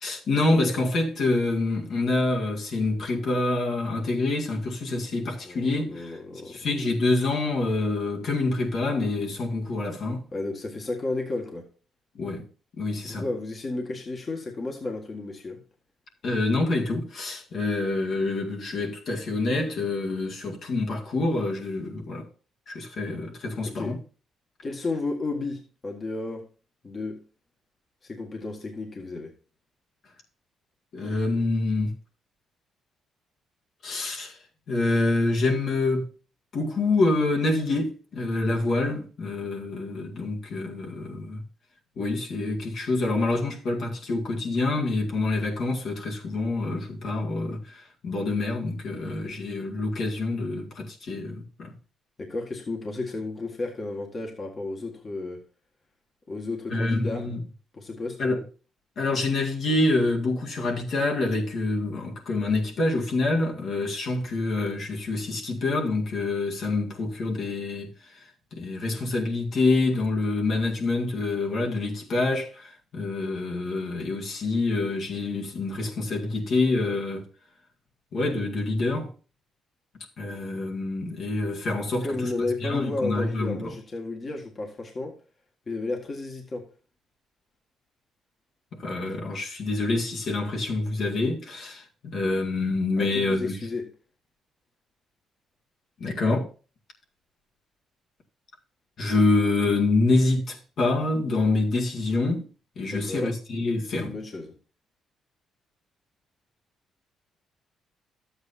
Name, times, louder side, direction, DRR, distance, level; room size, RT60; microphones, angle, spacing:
voice 1, 0.0-6.2 6.5-10.3 12.2-12.5 12.8-13.3 16.2-22.3 22.7-24.0 30.9-31.9 33.8-34.4 34.7-36.1 36.5-41.4 42.0-51.7 56.7-57.4 58.2-58.4 59.0-67.9 68.5-77.3 78.1-79.1 80.2-82.1 82.6-83.8 88.7-93.5 96.0-96.5 99.0-102.5 102.8-104.2, left 2 dB, 60° left, 2.0 m, -26 dB
voice 2, 5.4-6.7 10.3-11.7 13.1-15.6 23.6-24.0 24.6-26.5 26.8-27.2 28.0-29.3 52.2-55.4 56.3-57.3 57.8-58.2 82.0-85.2 85.7-86.7 93.0-93.9 102.9-103.3 104.0-104.5, left 2 dB, 35° left, 1.6 m, -33 dB
12.0 x 8.1 x 2.7 m
cardioid pair, 90°, 0 cm